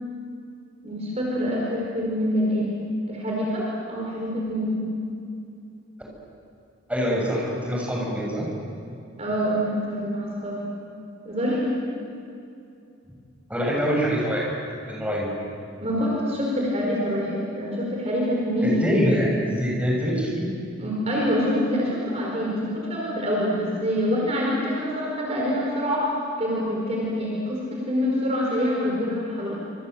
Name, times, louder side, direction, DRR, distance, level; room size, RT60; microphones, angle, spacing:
voice 1, 0.8-2.8 3.1-4.9 9.2-10.6 11.2-11.7 15.8-18.8 20.8-26.1 26.4-29.6, equal, 30° right, -3 dB, 5.0 m, -26 dB
voice 2, 6.9-8.5 13.5-14.4 14.9-15.3 18.6-20.5, equal, 5° right, -3 dB, 6.9 m, -24 dB
28.0 x 26.5 x 8.1 m, 2.5 s
head